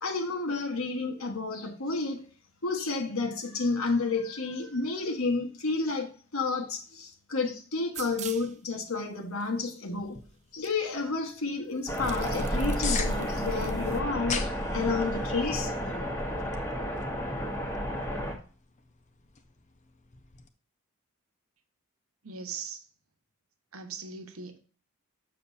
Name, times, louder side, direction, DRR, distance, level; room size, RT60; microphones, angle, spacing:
voice 1, 0.0-2.3 2.6-10.2 10.5-15.7, left 3 dB, 70° left, 1.3 m, -31 dB
sound 1, 7.9-8.6 9.4-9.5 10.6-10.7 11.0-11.1 11.8-14.0, right 8 dB, 30° right, 0.5 m, -43 dB
sound 2, 9.9-20.5, left 6 dB, 30° left, 0.7 m, -42 dB
sound 3, 11.9-18.3, equal, 10° left, 1.2 m, -31 dB
voice 2, 22.2-22.8 23.7-24.6, right 5 dB, 70° right, 1.1 m, -39 dB
6.9 x 6.8 x 2.7 m
head